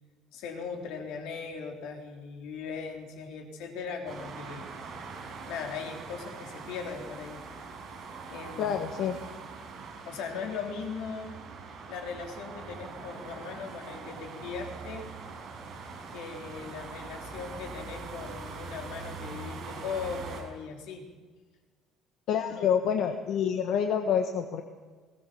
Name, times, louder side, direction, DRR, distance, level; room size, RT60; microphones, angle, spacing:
voice 1, 0.3-4.7 5.5-7.4 8.3-8.7 10.1-11.4 11.9-15.1 16.1-21.1 22.5-22.7, left 5 dB, 70° left, 2 dB, 3.8 m, -39 dB
sound 1, 4.1-20.4, right 4 dB, 35° right, 5.5 m, -43 dB
voice 2, 8.6-9.2 22.3-24.6, left 8 dB, 55° left, 5 dB, 1.5 m, -27 dB
21.0 x 19.0 x 7.0 m, 1.4 s
cardioid pair, 175°, 0 cm